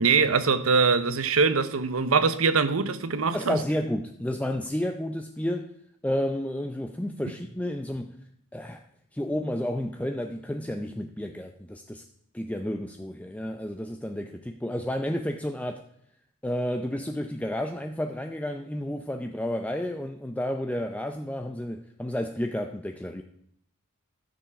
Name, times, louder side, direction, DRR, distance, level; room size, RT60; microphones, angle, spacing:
voice 1, 0.0-3.6, right 5 dB, 75° right, 0.9 m, -23 dB
voice 2, 3.3-5.7 6.0-8.2 8.5-8.8 9.1-12.0 12.3-15.8 16.4-23.2, left 1 dB, 5° left, 0.5 m, -31 dB
12.0 x 7.2 x 5.8 m
head